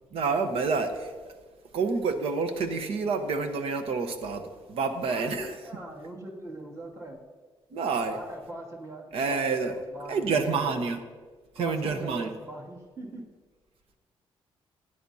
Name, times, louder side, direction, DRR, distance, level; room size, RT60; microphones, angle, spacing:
voice 1, 0.1-1.3 1.7-5.5 7.7-8.2 9.1-9.8 10.1-11.0 11.6-12.3, right 4 dB, 75° right, 7 dB, 1.1 m, -28 dB
voice 2, 5.1-7.2 8.1-10.8 11.5-13.3, right 1 dB, 30° right, -2 dB, 2.4 m, -41 dB
16.5 x 10.0 x 2.8 m, 1.4 s
cardioid pair, 105°, 10 cm